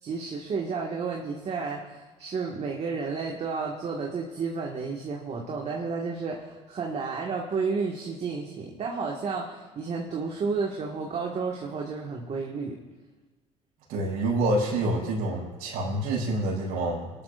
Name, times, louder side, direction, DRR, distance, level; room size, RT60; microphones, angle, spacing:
voice 1, 0.0-12.8, right 4 dB, 45° right, -1 dB, 1.8 m, -31 dB
voice 2, 13.9-17.1, right 1 dB, 75° right, -3 dB, 5.5 m, -27 dB
24.5 x 12.5 x 2.6 m, 1.3 s
supercardioid pair, 80°, 15 cm